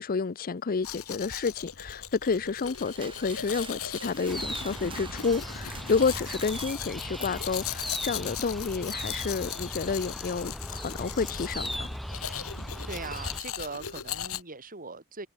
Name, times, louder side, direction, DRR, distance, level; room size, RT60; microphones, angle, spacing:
voice 1, 0.0-11.9, left 4 dB, 40° left, 0.5 m, -30 dB
Domestic sounds home sounds, 0.8-14.4, left 10 dB, 70° left, 2.0 m, -39 dB
sound 1, 2.4-7.7, right 5 dB, 25° right, 4.5 m, -46 dB
sound 2, 4.3-13.4, equal, ahead, 4.2 m, -38 dB
voice 2, 12.9-15.3, right 3 dB, 40° right, 5.2 m, -40 dB
head